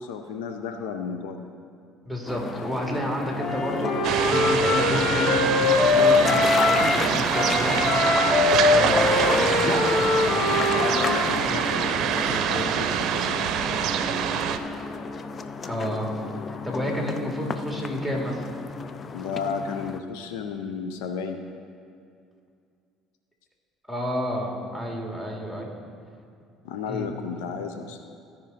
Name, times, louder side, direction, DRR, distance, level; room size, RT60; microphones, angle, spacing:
voice 1, 0.0-1.5 6.0-6.4 10.8-13.9 19.1-21.4 26.6-28.0, left 6 dB, 80° left, 6 dB, 0.6 m, -33 dB
voice 2, 2.0-8.0 8.6-10.9 11.5-11.6 15.6-16.1 16.6-18.4 23.9-25.7 26.9-27.1, equal, 5° left, -1 dB, 2.5 m, -30 dB
sound 1, 2.3-20.0, left 4 dB, 40° left, 0.5 m, -33 dB
Wind instrument woodwind instrument, 3.4-7.0 7.3-11.3, left 3 dB, 55° left, 1.4 m, -23 dB
sound 2, 4.0-14.6, right 8 dB, 60° right, 0.6 m, -25 dB
15.5 x 5.3 x 4.2 m, 2.4 s
hypercardioid pair, 65°, 0 cm